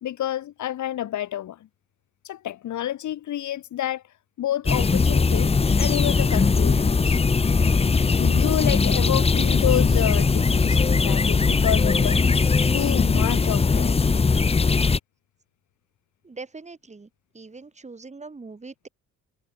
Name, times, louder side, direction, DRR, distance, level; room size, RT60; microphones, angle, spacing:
voice 1, 0.0-1.7 2.2-4.0 4.4-7.2 8.1-12.3 12.7-14.0, left 12 dB, 70° left, 2.6 m, -29 dB
sound 1, 4.7-15.0, left 4 dB, 20° left, 0.8 m, -20 dB
voice 2, 16.2-17.1 17.3-18.9, right 3 dB, 25° right, 3.2 m, -41 dB
cardioid pair, 90°, 30 cm